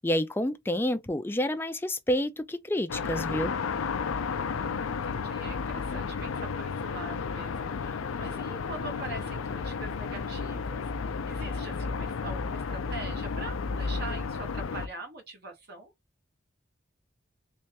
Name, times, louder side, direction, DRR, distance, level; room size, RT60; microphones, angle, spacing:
voice 1, 0.0-3.5, left 1 dB, 10° left, 0.3 m, -29 dB
sound 1, 2.9-14.9, left 5 dB, 90° left, 0.5 m, -32 dB
voice 2, 4.5-10.9 11.3-15.9, right 2 dB, 50° right, 1.0 m, -43 dB
3.2 x 3.2 x 2.9 m
head